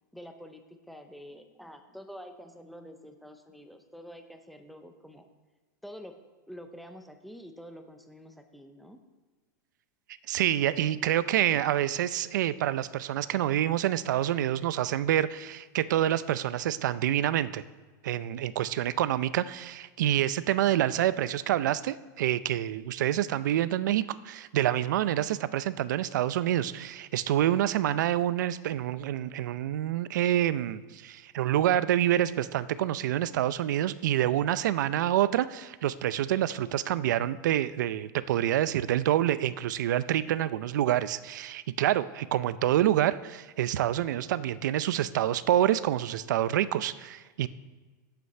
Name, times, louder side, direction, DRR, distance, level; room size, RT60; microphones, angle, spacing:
voice 1, 0.1-5.3 5.8-6.1 6.5-9.0, equal, ahead, 6 dB, 0.5 m, -47 dB
voice 2, 10.3-17.6 18.0-47.5, right 12 dB, 70° right, 16 dB, 0.5 m, -27 dB
8.3 x 7.9 x 6.5 m, 1.4 s
supercardioid pair, 175°, 10 cm